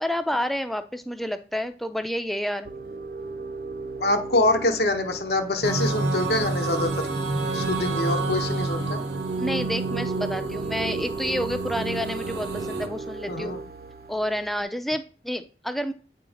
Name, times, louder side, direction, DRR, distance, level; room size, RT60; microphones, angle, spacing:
voice 1, 0.0-2.7 9.4-13.6 14.1-15.9, equal, ahead, 9 dB, 0.4 m, -29 dB
sound 1, 2.6-14.6, right 3 dB, 55° right, 0.6 m, -36 dB
voice 2, 4.0-7.1 7.5-9.0 13.3-13.6, left 2 dB, 65° left, 6 dB, 0.9 m, -25 dB
sound 2, 5.6-12.9, right 3 dB, 75° right, 0.9 m, -29 dB
8.7 x 3.0 x 4.9 m, 0.39 s
head